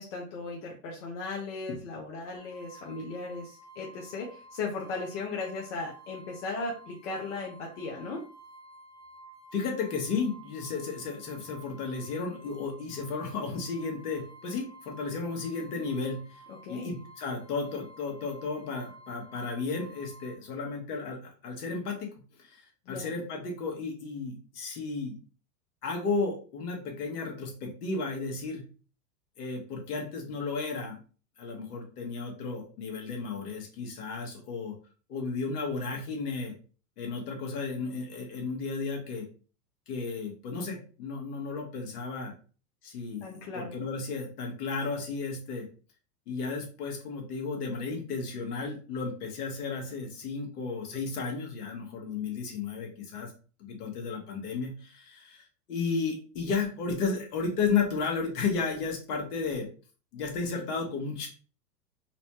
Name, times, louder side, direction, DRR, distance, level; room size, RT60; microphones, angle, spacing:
voice 1, 0.0-8.2 16.6-16.9 22.9-23.0 43.2-43.7, left 3 dB, 50° left, -2 dB, 0.9 m, -37 dB
sound 1, 2.4-20.4, right 1 dB, 15° left, 0.5 m, -52 dB
voice 2, 9.5-16.4 16.7-22.1 22.4-25.2 25.8-28.6 29.4-31.0 31.4-34.8 35.1-36.5 37.0-39.3 39.9-42.3 42.8-45.7 46.3-53.3 53.6-59.7 60.1-61.3, left 4 dB, 65° left, 1 dB, 1.5 m, -33 dB
4.0 x 2.2 x 3.0 m, 0.37 s
hypercardioid pair, 115°, 49 cm